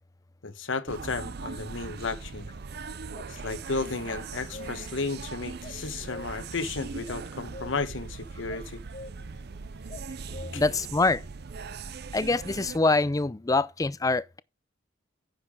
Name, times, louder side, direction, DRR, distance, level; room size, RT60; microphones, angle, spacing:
voice 1, 0.4-2.5 3.3-8.8 10.5-10.6, left 3 dB, 75° left, 1.1 m, -33 dB
sound 1, 0.9-12.8, right 4 dB, 55° right, 0.6 m, -40 dB
sound 2, 2.4-2.6 3.1-3.3 4.1-5.0 5.6-6.6 7.1-8.1 8.4-9.4 9.9-10.8, left 2 dB, 35° left, 1.0 m, -45 dB
voice 2, 10.5-11.2 12.1-14.4, left 3 dB, 20° left, 0.4 m, -25 dB
10.0 x 6.6 x 3.7 m
head